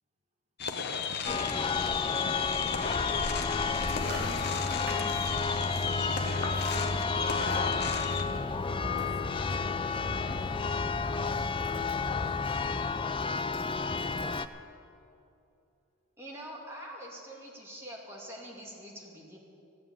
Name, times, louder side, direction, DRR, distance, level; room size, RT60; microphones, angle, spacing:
sound 1, 0.6-8.2, left 6 dB, 45° left, 0.8 m, -35 dB
Church bell, 1.3-14.5, left 5 dB, 25° left, 0.3 m, -32 dB
sound 2, 3.5-12.7, left 1 dB, 50° right, 3.6 m, -38 dB
voice 1, 3.8-7.6 8.1-9.3, right 1 dB, 30° right, 1.7 m, -48 dB
voice 2, 10.4-10.9 16.2-19.4, right 1 dB, 10° right, 2.2 m, -45 dB
14.0 x 9.2 x 8.6 m
head